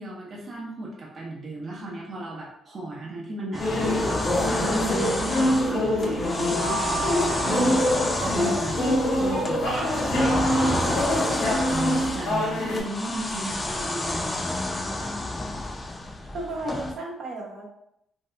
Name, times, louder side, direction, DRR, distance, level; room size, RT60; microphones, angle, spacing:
voice 1, 0.0-7.2 7.5-7.9 8.2-10.8 11.4-14.4, right 2 dB, 45° right, -4 dB, 0.7 m, -35 dB
sound 1, 3.5-16.9, left 2 dB, 25° left, 0.5 m, -30 dB
sound 2, 3.6-12.8, left 1 dB, 80° left, 1.2 m, -25 dB
sound 3, 6.4-9.1, right 2 dB, 60° left, 0.6 m, -34 dB
voice 2, 12.6-13.2 16.2-17.6, right 1 dB, 75° right, -3 dB, 0.8 m, -35 dB
2.7 x 2.3 x 3.2 m, 0.77 s
cardioid pair, 90°, 0 cm